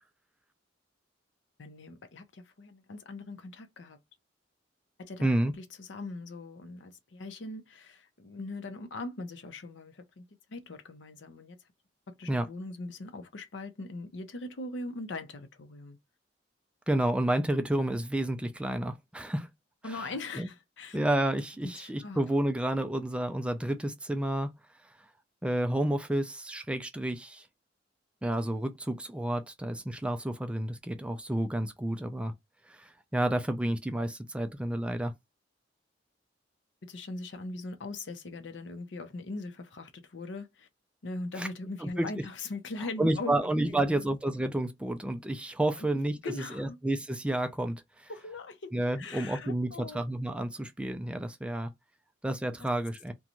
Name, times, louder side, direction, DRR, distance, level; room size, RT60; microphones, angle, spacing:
voice 1, 1.6-4.0 5.0-5.3 5.6-11.6 12.1-16.0 19.8-21.0 21.6-22.2 36.8-40.7 41.0-43.3 43.6-44.1 45.8-45.9 46.2-46.8 48.1-50.0, left 2 dB, 75° left, 0.6 m, -41 dB
voice 2, 5.2-5.5 12.3-12.5 16.9-19.5 19.8-20.1 20.4-20.5 20.9-24.5 24.8-24.9 25.4-27.5 28.2-32.3 32.7-35.1 41.4-41.5 41.8-42.1 43.0-48.1 48.7-51.7 52.2-53.1, right 1 dB, 5° right, 0.3 m, -30 dB
2.5 x 2.2 x 2.9 m
head